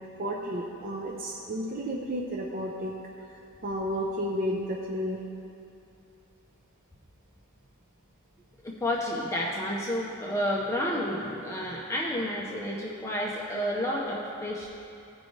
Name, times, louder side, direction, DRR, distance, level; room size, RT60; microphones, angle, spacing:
voice 1, 0.2-2.9 3.6-5.2, equal, 40° right, -1 dB, 0.6 m, -32 dB
voice 2, 8.6-14.7, equal, 15° left, -3 dB, 0.6 m, -30 dB
15.5 x 5.3 x 3.1 m, 2.6 s
head